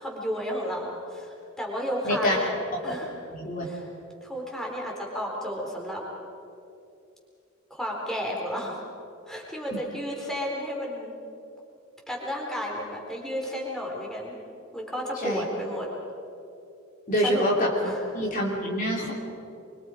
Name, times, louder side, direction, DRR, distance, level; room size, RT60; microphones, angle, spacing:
voice 1, 0.0-2.6 2.8-3.1 3.6-3.9 4.2-6.0 7.7-8.8 9.3-11.1 12.1-14.3 14.7-15.9 17.2-17.5 17.8-18.0, equal, ahead, -2 dB, 4.1 m, -32 dB
voice 2, 2.0-2.4 3.3-3.6 15.2-15.4 17.1-19.1, equal, 40° left, -2 dB, 3.2 m, -26 dB
25.5 x 24.0 x 5.1 m, 2.6 s
head